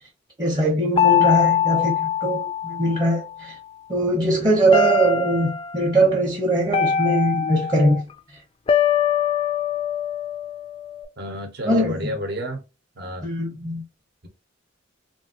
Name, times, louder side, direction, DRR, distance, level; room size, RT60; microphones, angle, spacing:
voice 1, 0.4-3.6 3.9-8.1 11.6-12.2 13.2-13.8, right 1 dB, 20° right, 0.8 m, -21 dB
sound 1, 1.0-3.3 4.7-5.7 6.7-8.0 8.7-11.0, left 8 dB, 30° left, 0.3 m, -22 dB
voice 2, 11.2-12.6 13.0-13.3, equal, 60° right, 1.0 m, -31 dB
3.1 x 2.5 x 2.8 m
head